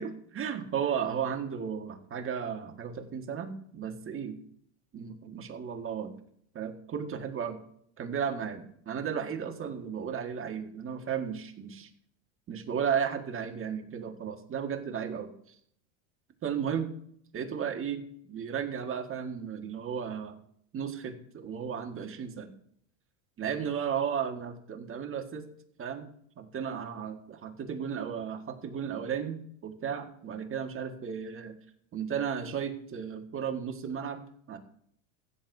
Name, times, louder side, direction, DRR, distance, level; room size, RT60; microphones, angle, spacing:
voice 1, 0.0-4.4 4.9-6.1 6.5-7.6 8.0-11.9 12.5-15.3 16.4-16.9 17.3-20.4 20.7-22.5 23.4-25.5 25.8-26.1 26.4-31.5 31.9-34.6, right 7 dB, 30° right, 4 dB, 1.7 m, -34 dB
16.0 x 9.3 x 2.7 m, 0.65 s
supercardioid pair, 110°, 40 cm